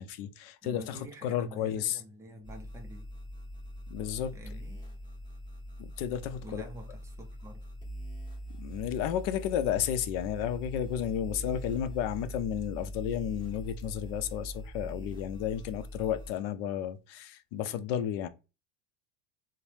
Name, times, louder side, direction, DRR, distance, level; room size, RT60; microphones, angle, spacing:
voice 1, 0.0-2.0 3.9-4.3 5.8-6.6 8.6-18.3, left 10 dB, 65° left, 0.5 m, -32 dB
voice 2, 0.6-3.1 4.3-4.8 6.4-7.7, right 1 dB, 10° right, 0.4 m, -47 dB
sound 1, 2.4-16.3, equal, 15° left, 1.4 m, -42 dB
2.7 x 2.0 x 3.2 m
supercardioid pair, 150°, 31 cm